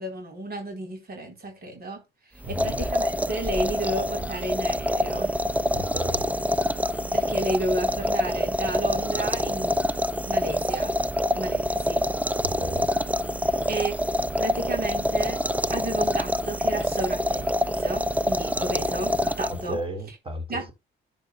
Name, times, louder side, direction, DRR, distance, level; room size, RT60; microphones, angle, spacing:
voice 1, 0.0-2.0 2.3-5.3 7.1-9.8 10.2-11.0 11.3-12.0 13.4-14.0 14.4-15.4 15.7-17.5 17.8-19.8 20.5-20.7, right 1 dB, 50° right, 4.1 m, -32 dB
sound 1, 2.4-19.8, equal, 5° right, 0.8 m, -26 dB
voice 2, 2.4-2.8 5.7-6.3 12.4-12.9 19.5-20.7, equal, 30° right, 4.2 m, -34 dB
11.5 x 9.2 x 2.3 m
cardioid pair, 90°, 20 cm